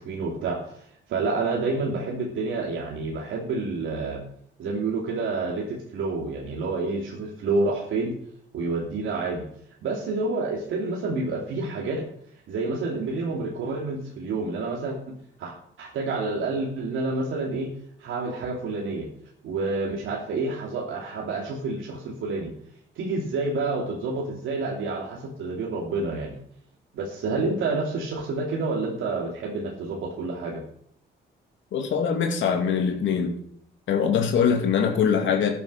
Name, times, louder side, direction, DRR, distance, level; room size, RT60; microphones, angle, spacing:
voice 1, 0.0-4.2 4.6-8.2 8.5-9.5 9.8-12.1 12.5-15.1 15.4-17.7 18.0-19.1 19.4-22.5 22.9-26.4 26.9-30.6, right 3 dB, 80° right, -1 dB, 2.6 m, -29 dB
voice 2, 31.7-33.4 33.9-35.5, left 7 dB, 75° left, 3 dB, 2.4 m, -23 dB
12.5 x 9.7 x 5.5 m, 0.68 s
cardioid pair, 90°, 20 cm